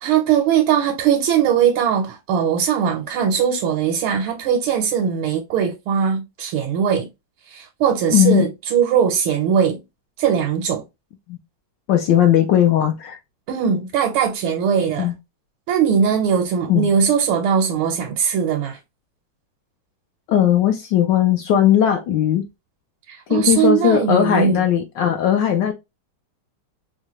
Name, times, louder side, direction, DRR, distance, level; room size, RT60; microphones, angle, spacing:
voice 1, 0.0-7.1 7.5-9.8 10.2-10.8 13.5-15.1 15.7-18.8 23.1-24.6, right 7 dB, 80° right, 1.5 m, -20 dB
voice 2, 8.1-8.5 11.3-11.4 11.9-13.2 15.0-15.1 16.7-16.9 20.3-22.4 23.3-25.7, left 10 dB, 75° left, 1.0 m, -17 dB
4.7 x 2.2 x 2.9 m
omnidirectional pair, 2.3 m